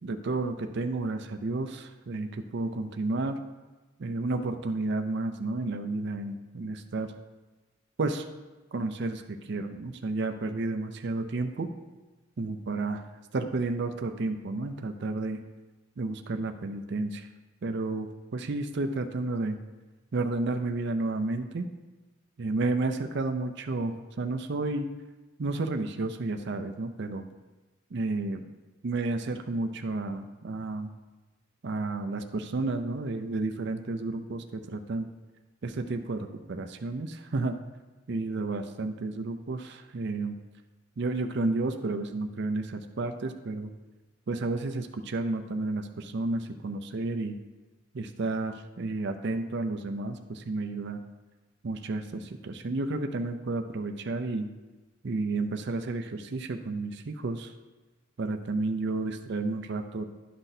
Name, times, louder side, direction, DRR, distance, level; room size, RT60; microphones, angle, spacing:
voice 1, 0.0-3.4 4.0-7.1 8.0-8.2 8.7-11.7 12.4-13.0 13.3-15.4 16.0-17.3 17.6-19.6 20.1-21.7 22.4-24.9 25.4-27.3 27.9-28.4 28.8-30.9 31.6-35.1 35.6-37.6 38.1-40.4 41.0-43.7 44.3-47.4 47.9-51.0 51.6-54.5 55.0-57.5 58.2-60.0, right 3 dB, 55° right, 6 dB, 0.5 m, -31 dB
11.0 x 5.7 x 2.7 m, 1.2 s
head